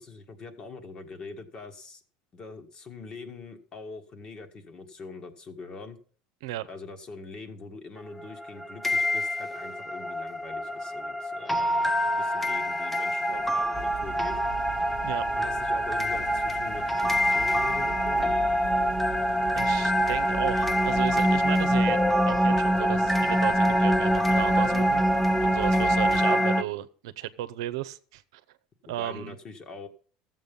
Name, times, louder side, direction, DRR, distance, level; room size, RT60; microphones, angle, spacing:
voice 1, 0.0-2.0 2.3-6.0 6.7-14.4 15.4-18.3 26.1-26.4 29.0-29.9, left 4 dB, 35° left, 1.7 m, -43 dB
sound 1, 8.0-26.6, equal, 5° left, 0.7 m, -25 dB
sound 2, 13.3-26.3, left 4 dB, 70° left, 1.8 m, -48 dB
sound 3, 13.7-26.2, right 10 dB, 40° right, 1.2 m, -41 dB
voice 2, 19.5-22.0 22.2-25.0 25.4-28.4 28.9-29.4, right 14 dB, 90° right, 0.7 m, -34 dB
14.0 x 7.6 x 5.4 m
supercardioid pair, 120°, 3 cm